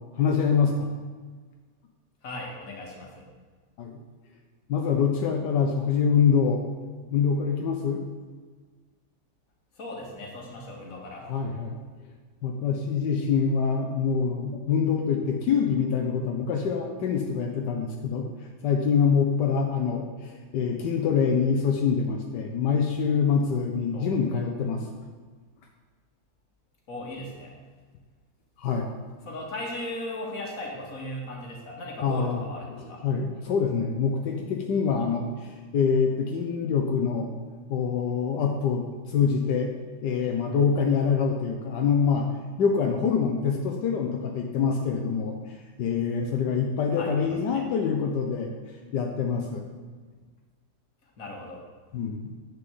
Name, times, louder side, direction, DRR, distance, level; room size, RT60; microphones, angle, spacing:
voice 1, 0.1-0.9 3.8-4.0 4.7-6.6 7.1-8.0 11.3-11.8 12.4-24.9 28.6-28.9 32.0-32.4 32.8-37.3 37.7-39.7 40.0-42.3 42.6-48.5 48.9-49.6 51.9-52.3, left 6 dB, 85° left, 2 dB, 1.5 m, -25 dB
voice 2, 2.2-3.3 9.8-11.3 23.9-24.1 26.9-27.6 29.3-33.1 47.0-47.6 51.2-51.7, left 1 dB, 55° left, 0 dB, 2.2 m, -37 dB
9.8 x 5.3 x 7.6 m, 1.5 s
omnidirectional pair, 1.8 m